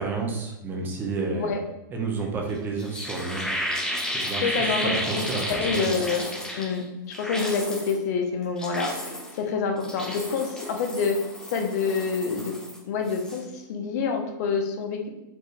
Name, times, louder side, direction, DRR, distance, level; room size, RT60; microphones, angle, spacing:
voice 1, 0.0-1.5 1.9-3.5 4.1-6.0, right 4 dB, 20° right, 1 dB, 0.6 m, -30 dB
voice 2, 1.3-1.6 4.4-6.3 6.5-11.2 11.5-12.5 12.8-15.1, left 5 dB, 50° left, 4 dB, 0.6 m, -27 dB
sound 1, 2.5-2.6 2.8-6.8 7.1-7.9 8.4-9.4 9.8-12.8 13.0-13.4, equal, 5° left, 1.0 m, -32 dB
4.4 x 2.5 x 3.2 m, 1.0 s
hypercardioid pair, 150°, 11 cm